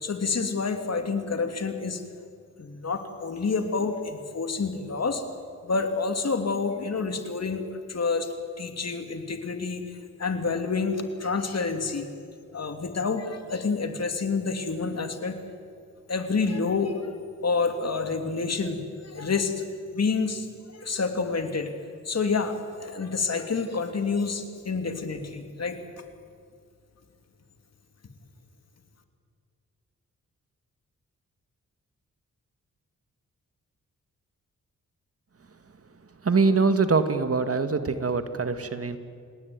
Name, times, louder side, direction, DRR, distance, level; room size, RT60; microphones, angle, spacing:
voice 1, 0.0-2.0 2.6-5.2 5.6-9.8 10.2-12.1 12.5-15.4 16.1-17.2 17.4-18.8 19.0-19.5 19.9-20.5 20.8-21.7 22.0-25.8, left 4 dB, 55° left, 6 dB, 2.9 m, -28 dB
voice 2, 36.2-39.0, right 4 dB, 45° right, 9 dB, 1.9 m, -23 dB
29.5 x 18.0 x 9.6 m, 2.2 s
cardioid pair, 70°, 31 cm